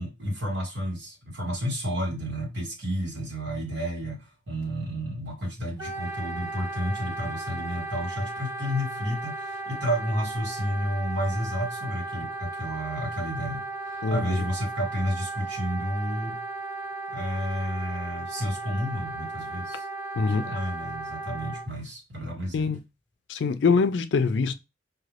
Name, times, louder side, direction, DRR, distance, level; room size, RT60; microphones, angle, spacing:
voice 1, 0.0-16.4 17.1-19.9 20.2-22.7, equal, 70° right, 1.8 m, -31 dB
Wind instrument woodwind instrument, 5.8-21.7, right 2 dB, 15° right, 0.6 m, -35 dB
voice 2, 23.3-24.5, left 4 dB, 70° left, 0.4 m, -23 dB
4.6 x 2.5 x 3.2 m
head